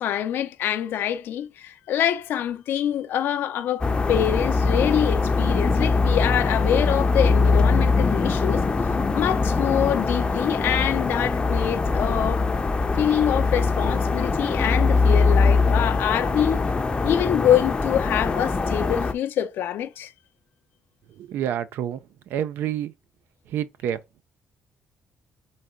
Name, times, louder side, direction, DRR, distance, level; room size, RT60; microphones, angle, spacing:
voice 1, 0.0-12.5 12.9-16.7 17.0-20.1, left 10 dB, 75° left, 0.6 m, -25 dB
sound 1, 3.8-19.1, left 4 dB, 25° left, 0.6 m, -22 dB
voice 2, 21.2-22.9 23.5-24.0, right 10 dB, 80° right, 0.5 m, -28 dB
4.0 x 3.5 x 3.7 m
cardioid pair, 85°, 4 cm